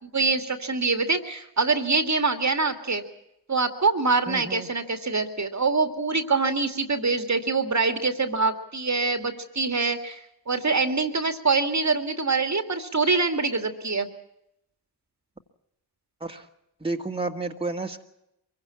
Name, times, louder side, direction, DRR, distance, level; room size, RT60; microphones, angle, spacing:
voice 1, 0.0-3.0 3.5-14.1, right 4 dB, 35° right, 8 dB, 2.2 m, -25 dB
voice 2, 4.3-4.7 16.2-16.5 16.8-18.0, right 3 dB, 10° right, 2 dB, 2.0 m, -31 dB
23.0 x 16.0 x 8.7 m, 0.83 s
supercardioid pair, 40°, 46 cm